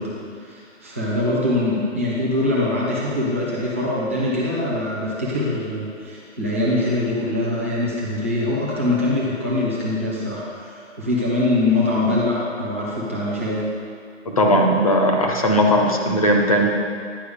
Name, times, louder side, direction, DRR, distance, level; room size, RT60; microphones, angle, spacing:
voice 1, 0.0-13.7, left 2 dB, 10° right, -8 dB, 0.5 m, -23 dB
voice 2, 14.3-16.7, equal, 30° left, 1 dB, 0.6 m, -18 dB
10.0 x 4.6 x 4.9 m, 2.3 s
hypercardioid pair, 175°, 37 cm